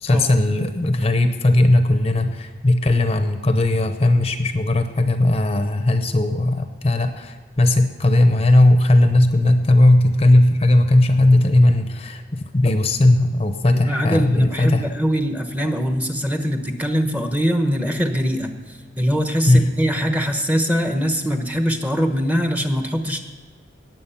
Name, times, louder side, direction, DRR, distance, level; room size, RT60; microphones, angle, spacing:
voice 1, 0.0-14.9 19.5-19.6, left 1 dB, 30° left, 8 dB, 0.7 m, -17 dB
voice 2, 13.7-23.2, equal, 10° right, 5 dB, 1.0 m, -22 dB
19.0 x 7.6 x 5.7 m, 1.5 s
head